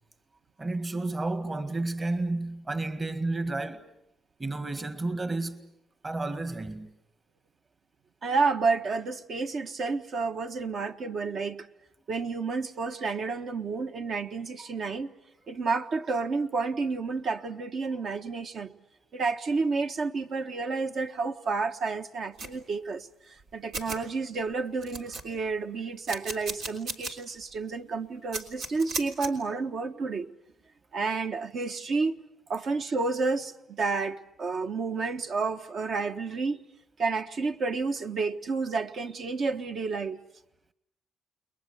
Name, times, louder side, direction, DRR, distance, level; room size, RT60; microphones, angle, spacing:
voice 1, 0.6-3.8 4.4-5.7 6.0-6.9, right 2 dB, 25° right, 1.8 m, -31 dB
voice 2, 8.2-11.7 12.1-15.1 15.5-18.7 19.1-30.3 30.9-32.2 32.5-36.6 37.0-40.2, right 4 dB, 55° right, 1.4 m, -30 dB
sound 1, 22.4-22.5 23.4-23.5 23.7-24.0 24.5-24.6 24.8-25.5 26.1-27.1 27.5-27.6 28.3-29.3, right 3 dB, 85° right, 3.4 m, -35 dB
30.0 x 22.0 x 8.1 m
cardioid pair, 90°, 0 cm